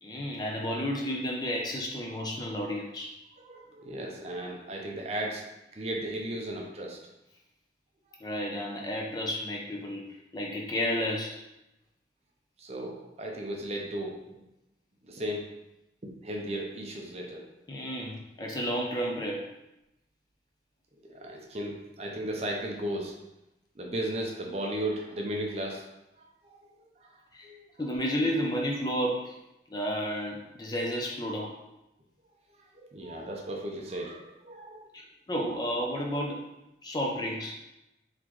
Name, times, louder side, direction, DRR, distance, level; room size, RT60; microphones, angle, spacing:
voice 1, 0.0-3.1 8.2-10.1 10.3-11.4 17.7-19.4 27.3-27.5 27.8-29.3 29.7-31.5 34.9-35.0 35.3-36.4 36.8-37.6, equal, 25° left, 0 dB, 0.5 m, -31 dB
voice 2, 3.4-5.4 5.7-7.0 12.6-14.2 15.0-15.4 16.0-17.5 21.1-23.1 23.8-25.8 26.2-26.6 27.0-27.1 27.4-27.6 32.7-34.9, right 1 dB, 35° right, 0 dB, 0.6 m, -35 dB
4.1 x 2.9 x 3.0 m, 0.90 s
head